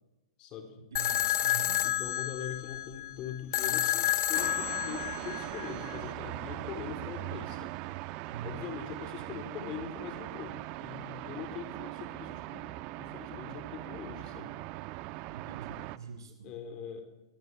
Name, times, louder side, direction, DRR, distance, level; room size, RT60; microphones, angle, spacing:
voice 1, 0.4-0.8 1.8-7.8 8.4-12.7 13.0-14.6 16.4-17.0, left 8 dB, 35° left, 7 dB, 4.2 m, -42 dB
voice 2, 0.9-1.8 8.3-8.5 9.2-9.4 15.3-16.5, right 5 dB, 85° right, 4 dB, 6.0 m, -44 dB
sound 1, 1.0-6.0, left 13 dB, 65° left, 2.3 m, -30 dB
sound 2, 4.3-16.0, right 17 dB, 40° right, 1.2 m, -40 dB
25.5 x 21.5 x 8.2 m, 1.0 s
hypercardioid pair, 130°, 2 cm